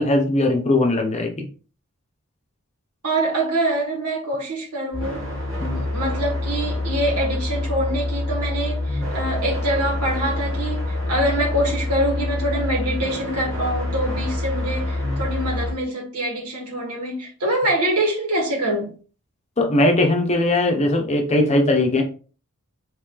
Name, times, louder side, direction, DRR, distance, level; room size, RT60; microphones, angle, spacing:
voice 1, 0.0-1.3 5.6-5.8 8.9-9.1 15.0-15.2 19.6-22.0, left 2 dB, 30° left, 0.8 m, -19 dB
voice 2, 3.0-5.2 5.7-18.9, right 1 dB, 85° right, 1.8 m, -25 dB
sound 1, 4.9-15.7, left 2 dB, 60° right, 1.9 m, -26 dB
3.2 x 3.1 x 3.7 m
head